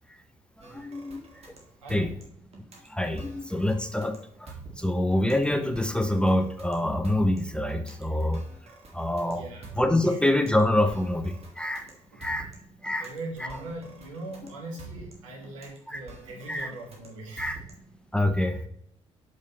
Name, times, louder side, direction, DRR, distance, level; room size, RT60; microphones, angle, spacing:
sound 1, 0.6-18.0, right 4 dB, 40° right, 1.8 m, -47 dB
voice 1, 0.7-1.2 1.9-2.1 2.9-8.4 8.9-9.4 9.8-11.9 12.2-12.5 12.8-13.1 13.4-13.5 15.9-16.0 16.5-16.7 17.4-17.6 18.1-18.7, left 1 dB, 5° left, 7 dB, 0.6 m, -26 dB
voice 2, 9.3-9.7 10.0-10.2 12.1-12.2 13.0-17.6, right 2 dB, 75° right, -1 dB, 1.4 m, -40 dB
6.4 x 5.5 x 2.9 m, 0.70 s
figure-of-eight pair, 45°, 16 cm